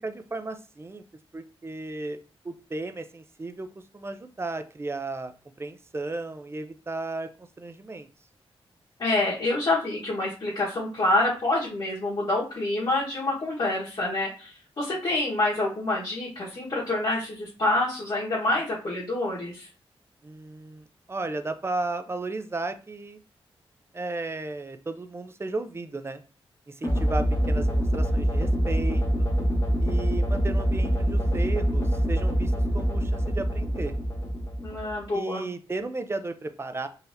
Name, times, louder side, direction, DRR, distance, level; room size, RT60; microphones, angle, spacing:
voice 1, 0.0-1.0 1.3-2.2 2.4-3.7 3.9-5.3 5.6-8.1 20.2-23.2 23.9-26.2 26.7-29.3 29.8-33.9 35.1-36.9, right 2 dB, 25° right, 9 dB, 0.4 m, -34 dB
voice 2, 9.0-19.7 34.6-35.5, left 2 dB, 50° left, -8 dB, 1.3 m, -27 dB
sound 1, 26.8-35.0, equal, 30° left, 1.0 m, -25 dB
3.9 x 2.8 x 2.6 m, 0.34 s
cardioid pair, 75°, 10 cm